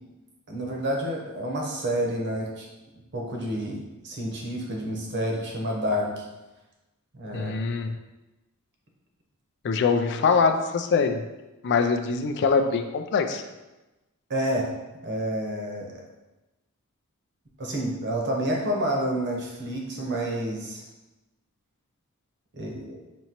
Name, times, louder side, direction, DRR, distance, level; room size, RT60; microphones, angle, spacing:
voice 1, 0.5-2.7 3.1-6.2 7.1-7.5 14.3-14.7 15.0-15.9 17.6-20.9 22.5-23.0, equal, 50° right, -1 dB, 0.9 m, -29 dB
voice 2, 7.3-7.9 9.6-11.2 11.6-13.4, left 5 dB, 55° left, 7 dB, 0.3 m, -23 dB
5.3 x 2.9 x 2.9 m, 1.0 s
head